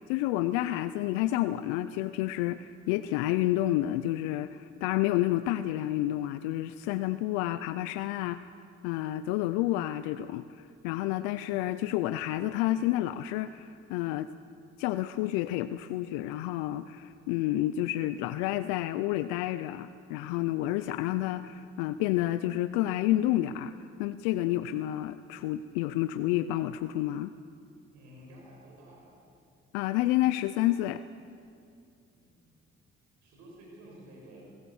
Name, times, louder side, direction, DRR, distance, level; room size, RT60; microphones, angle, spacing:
voice 1, 0.1-8.5 8.8-14.3 14.8-23.7 24.0-27.3 29.7-31.0, left 14 dB, 90° left, 13 dB, 0.5 m, -29 dB
voice 2, 27.9-29.2 32.1-32.6 33.2-34.4, equal, 85° right, -1 dB, 6.0 m, -52 dB
22.0 x 17.5 x 7.1 m, 2.4 s
hypercardioid pair, 50°, 29 cm